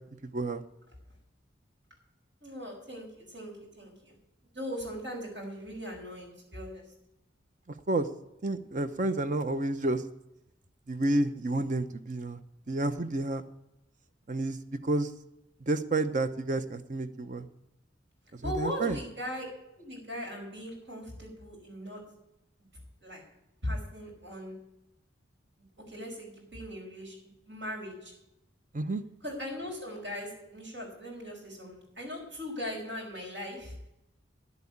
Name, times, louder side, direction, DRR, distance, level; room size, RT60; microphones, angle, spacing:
voice 1, 2.4-4.1 4.5-6.8 18.4-19.4 19.7-22.0 23.0-23.2 23.6-24.5 25.9-27.2 27.5-28.1 29.2-33.7, equal, 70° right, -3 dB, 5.6 m, -39 dB
voice 2, 8.4-10.0 10.9-12.4 12.7-13.4 14.3-14.6 14.8-15.1 15.7-17.5 18.4-19.0 28.7-29.0, right 2 dB, 40° right, 11 dB, 0.7 m, -30 dB
11.0 x 8.3 x 8.5 m, 0.87 s
head